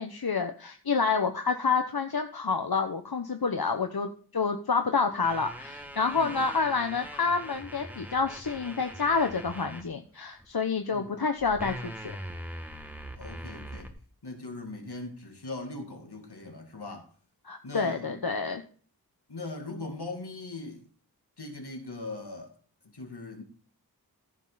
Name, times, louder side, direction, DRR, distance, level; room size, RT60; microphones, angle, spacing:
voice 1, 0.0-12.2 17.4-18.6, left 5 dB, 70° left, 1.0 m, -28 dB
sound 1, 5.2-9.8 10.4-10.6 11.4-13.9, equal, 5° right, 1.8 m, -42 dB
voice 2, 13.2-13.9 14.2-17.1 17.6-18.2 19.3-20.9 21.4-22.5 22.9-23.4, left 2 dB, 85° left, 2.4 m, -40 dB
15.0 x 5.3 x 4.0 m
wide cardioid pair, 45°, 38 cm